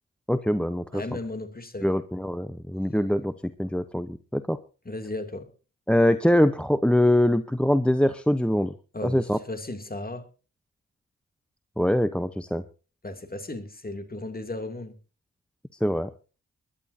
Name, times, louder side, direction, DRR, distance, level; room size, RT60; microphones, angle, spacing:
voice 1, 0.3-1.0 1.8-3.3 3.6-4.6 5.9-8.7 9.0-9.4 11.8-12.6 15.8-16.1, left 1 dB, 5° left, 12 dB, 0.9 m, -23 dB
voice 2, 0.9-1.9 4.8-5.5 8.9-10.2 13.0-14.9, left 2 dB, 30° left, 8 dB, 2.7 m, -35 dB
22.5 x 11.5 x 2.7 m, 0.34 s
supercardioid pair, 45°, 32 cm